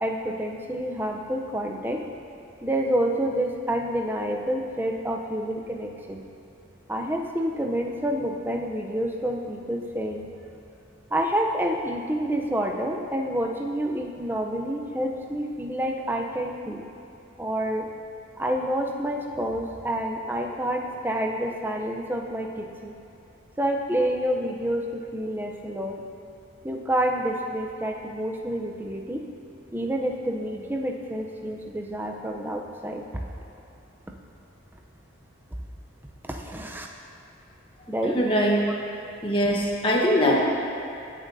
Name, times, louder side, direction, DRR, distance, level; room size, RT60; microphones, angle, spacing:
voice 1, 0.0-2.0 2.6-6.2 6.9-10.2 11.1-16.8 17.4-17.9 18.4-22.9 23.6-26.0 26.6-29.2 29.7-33.0 36.2-36.9 37.9-38.2, right 1 dB, 10° right, 1 dB, 0.6 m, -28 dB
voice 2, 38.1-38.6 39.2-40.4, equal, 25° left, -2 dB, 1.1 m, -21 dB
19.5 x 7.3 x 2.7 m, 2.6 s
head